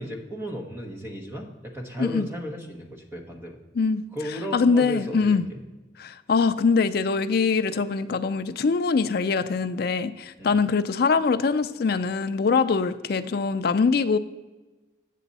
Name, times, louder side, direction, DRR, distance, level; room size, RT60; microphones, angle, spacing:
voice 1, 0.0-3.6 4.1-5.6 10.4-10.6, equal, 10° right, 1 dB, 1.0 m, -35 dB
voice 2, 4.5-5.4 6.0-14.2, left 4 dB, 50° left, 10 dB, 0.4 m, -23 dB
8.3 x 6.8 x 4.1 m, 1.2 s
head